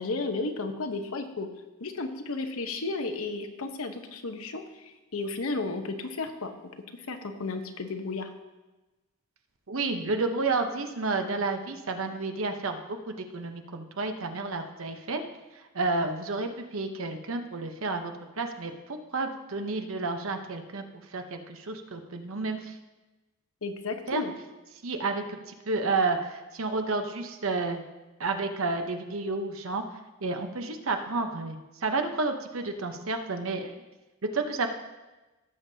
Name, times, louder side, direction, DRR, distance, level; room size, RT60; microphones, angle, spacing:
voice 1, 0.0-1.5 1.8-6.5 6.9-8.3 23.6-24.3, left 3 dB, 75° left, 6 dB, 1.0 m, -33 dB
voice 2, 9.7-12.8 13.1-15.2 15.7-20.8 21.1-22.7 24.1-24.2 24.8-27.8 28.2-29.8 30.2-33.7 34.3-34.7, right 3 dB, 70° right, 5 dB, 0.9 m, -31 dB
17.0 x 7.3 x 2.8 m, 1.1 s
head